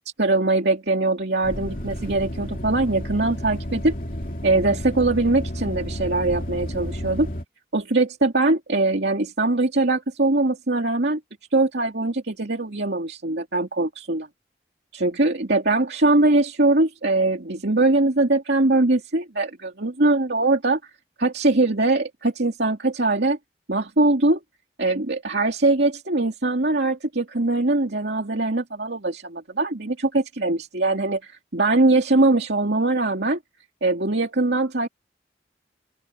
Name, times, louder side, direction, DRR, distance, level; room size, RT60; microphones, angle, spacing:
voice 1, 0.2-3.9 4.4-7.3 7.7-11.2 11.5-14.3 14.9-20.9 21.2-23.4 23.7-24.4 24.8-33.4 33.8-34.9, right 2 dB, 75° right, 2.4 m, -22 dB
sound 1, 1.4-7.4, equal, 50° left, 2.8 m, -31 dB
head